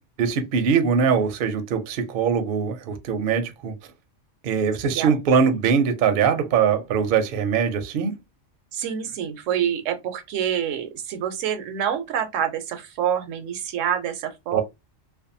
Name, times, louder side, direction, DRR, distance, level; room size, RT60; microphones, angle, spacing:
voice 1, 0.2-3.7 4.4-8.1 14.5-14.6, right 6 dB, 60° right, 0.6 m, -22 dB
voice 2, 8.7-14.6, right 9 dB, 80° right, 0.9 m, -27 dB
2.5 x 2.2 x 2.6 m
omnidirectional pair, 1.3 m